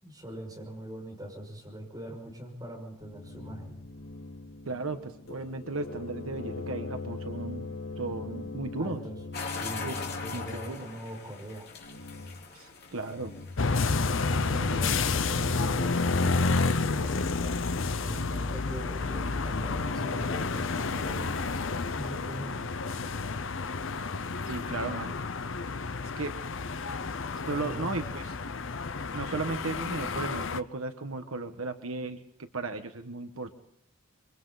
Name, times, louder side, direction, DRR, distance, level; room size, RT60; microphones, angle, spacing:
voice 1, 0.0-3.7 8.8-9.2 9.5-11.7 14.3-17.6 18.0-21.5 21.9-22.6 27.6-27.9, right 1 dB, 20° right, 0 dB, 6.1 m, -42 dB
sound 1, 3.0-10.7 11.8-12.4 13.0-13.6 13.8-17.9, left 3 dB, 90° left, 4.0 m, -42 dB
voice 2, 4.7-9.0 9.8-9.9 10.3-10.9 12.5-13.3 24.5-25.1 26.2-26.3 27.5-28.4 29.1-33.5, right 3 dB, 80° right, 7 dB, 1.3 m, -35 dB
sound 2, 9.3-17.5, left 4 dB, 50° left, 3.5 m, -43 dB
sound 3, 13.6-30.6, left 4 dB, 65° left, 0.8 m, -30 dB
27.5 x 24.0 x 4.1 m, 0.68 s
head